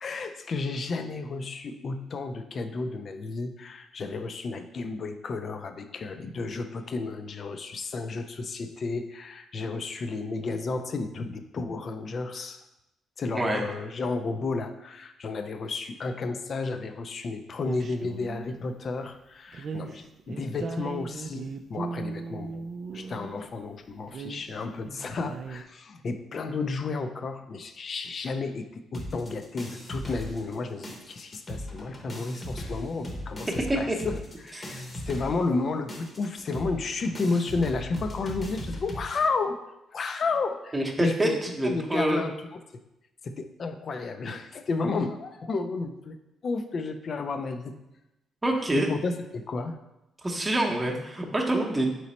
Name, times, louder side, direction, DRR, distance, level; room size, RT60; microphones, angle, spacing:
voice 1, 0.0-12.6 13.2-22.7 22.9-33.5 33.8-34.2 34.4-39.6 39.9-41.4 41.6-42.3 43.2-46.2 46.4-47.8 48.7-49.8, left 3 dB, 50° left, 8 dB, 0.4 m, -32 dB
sound 1, 17.6-18.6 19.5-23.5 24.0-25.6, right 4 dB, 50° right, 0.3 m, -38 dB
sound 2, 28.9-30.6 30.8-39.1, equal, 30° left, 0.8 m, -38 dB
voice 2, 40.7-42.2 48.4-48.9 50.2-51.9, right 1 dB, 15° right, 0 dB, 0.8 m, -26 dB
3.9 x 3.0 x 4.1 m, 0.91 s
cardioid pair, 90°, 0 cm